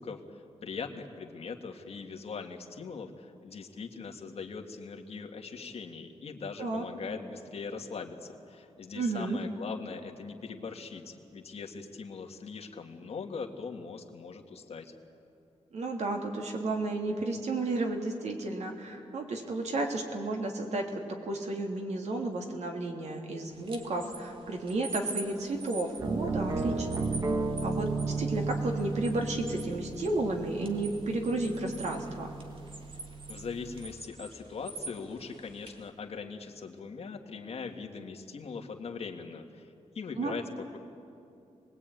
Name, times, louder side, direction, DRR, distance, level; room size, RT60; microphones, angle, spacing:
voice 1, 0.0-14.9 33.3-40.4, left 5 dB, 55° left, 3 dB, 1.9 m, -41 dB
voice 2, 8.9-9.4 15.7-27.0 27.6-32.3 40.1-40.3, right 2 dB, 70° right, 2 dB, 3.1 m, -32 dB
sound 1, 23.5-35.9, right 3 dB, 45° right, 2.2 m, -46 dB
sound 2, 26.0-33.9, right 3 dB, 30° right, 1.1 m, -34 dB
27.0 x 20.5 x 9.2 m, 2.6 s
wide cardioid pair, 175°, 12 cm